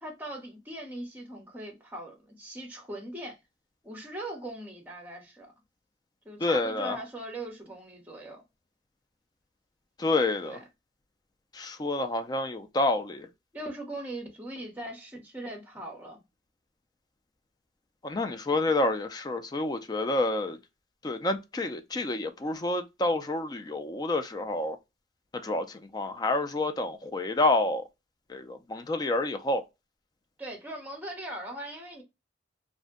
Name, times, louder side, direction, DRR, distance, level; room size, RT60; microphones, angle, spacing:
voice 1, 0.0-3.4 3.8-5.5 6.2-8.4 10.4-10.6 13.5-16.2 18.5-18.6 30.4-32.0, right 1 dB, 10° right, 0.9 m, -40 dB
voice 2, 6.4-7.0 10.0-10.6 11.5-13.3 18.0-20.6 21.0-24.8 25.3-27.8 28.3-29.6, left 2 dB, 20° left, 0.3 m, -28 dB
2.5 x 2.1 x 3.5 m
head